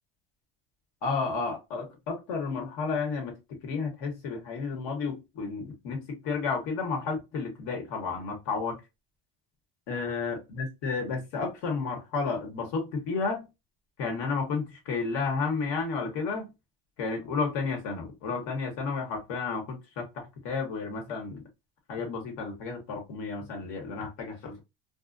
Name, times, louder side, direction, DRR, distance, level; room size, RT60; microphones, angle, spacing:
voice 1, 1.0-8.8 9.9-13.5 14.0-16.5 17.0-21.4 21.9-24.6, left 4 dB, 80° left, 1.2 m, -32 dB
2.4 x 2.3 x 2.5 m
cardioid pair, 115°, 44 cm